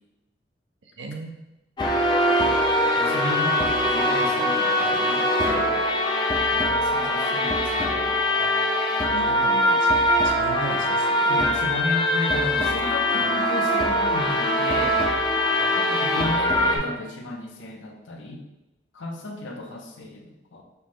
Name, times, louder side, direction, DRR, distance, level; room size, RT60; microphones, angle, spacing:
voice 1, 0.8-1.4 9.1-10.0 10.2-11.3, right 2 dB, 75° right, 3 dB, 0.6 m, -36 dB
sound 1, 1.8-16.8, left 1 dB, 25° left, 0.4 m, -22 dB
voice 2, 3.0-5.8 6.5-8.2 11.3-15.0 15.9-18.4 18.9-20.6, left 2 dB, 90° left, 2 dB, 0.6 m, -33 dB
5.5 x 2.1 x 3.1 m, 1.0 s
head